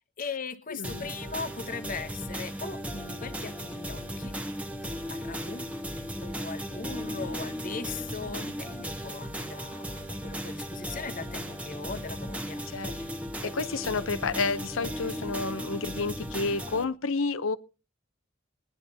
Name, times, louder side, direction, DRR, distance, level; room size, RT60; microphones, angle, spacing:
voice 1, 0.2-4.4 4.8-5.7 6.2-13.1, left 4 dB, 40° left, 10 dB, 1.0 m, -39 dB
voice 2, 0.7-1.1 12.7-13.0 13.4-17.6, left 4 dB, 80° left, 15 dB, 0.7 m, -30 dB
sound 1, 0.8-16.8, equal, 5° right, 1.0 m, -36 dB
20.0 x 11.0 x 2.8 m, 0.30 s
head